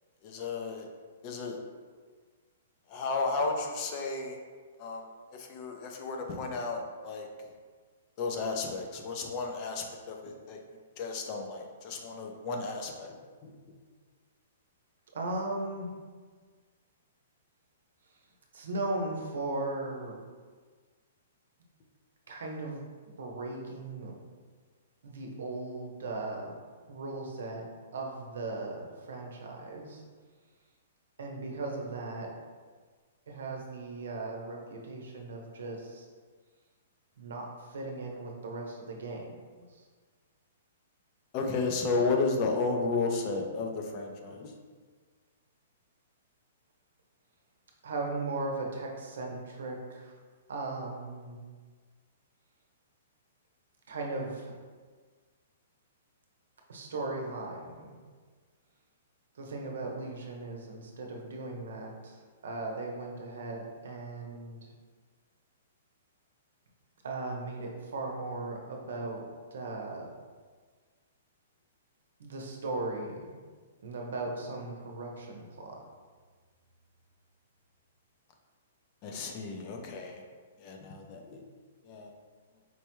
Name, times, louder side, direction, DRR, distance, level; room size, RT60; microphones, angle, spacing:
voice 1, 0.2-0.9 1.2-1.6 2.9-4.4 4.8-5.1 5.3-7.5 8.2-10.6 11.0-13.2 13.4-13.7 41.3-44.6 79.0-80.2 80.6-81.4 81.8-82.1, left 3 dB, 35° left, 2 dB, 0.4 m, -33 dB
voice 2, 15.1-15.9 18.5-20.2 22.3-24.1 25.0-26.6 26.9-27.6 27.9-30.0 31.2-32.3 33.3-36.0 37.2-39.8 47.8-50.2 50.5-51.4 53.9-54.5 56.7-58.0 59.3-64.6 67.0-70.1 72.2-73.4 73.8-75.8, right 2 dB, 80° right, 0 dB, 0.7 m, -37 dB
4.5 x 2.2 x 3.0 m, 1.5 s
hypercardioid pair, 155°, 0 cm